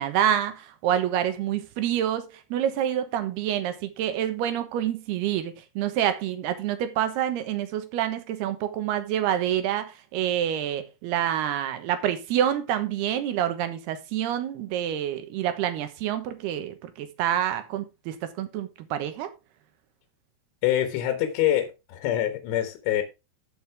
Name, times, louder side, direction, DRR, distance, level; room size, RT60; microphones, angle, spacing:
voice 1, 0.0-19.3, right 10 dB, 70° right, 3.0 m, -27 dB
voice 2, 20.6-23.0, left 12 dB, 75° left, 3.5 m, -25 dB
14.5 x 6.6 x 3.5 m
omnidirectional pair, 5.1 m